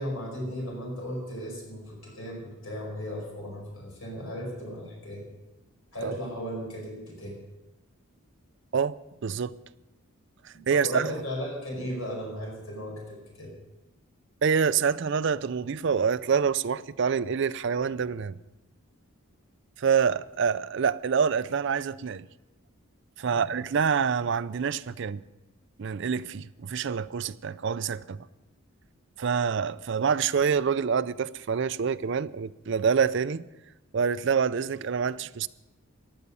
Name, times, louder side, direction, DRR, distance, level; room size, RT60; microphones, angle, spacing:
voice 1, 0.0-5.3 5.9-7.4 10.5-13.5 23.3-23.5, equal, 75° left, 5.0 m, -36 dB
voice 2, 9.2-9.5 10.4-11.1 14.4-18.4 19.8-22.2 23.2-25.2 25.8-28.2 29.2-33.4 33.9-35.5, right 6 dB, 55° right, 0.4 m, -26 dB
15.5 x 11.0 x 5.5 m
head